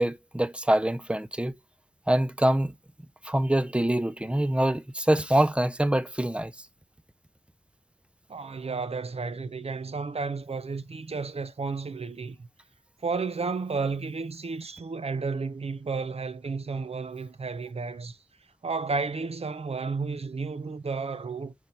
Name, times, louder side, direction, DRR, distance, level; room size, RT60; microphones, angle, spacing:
voice 1, 0.0-1.5 2.1-2.7 3.2-6.5, right 1 dB, 10° right, 0.6 m, -25 dB
voice 2, 8.3-12.5 13.0-18.2 18.6-21.5, right 4 dB, 75° right, 0.6 m, -32 dB
5.7 x 4.6 x 5.2 m
wide cardioid pair, 55°, 11 cm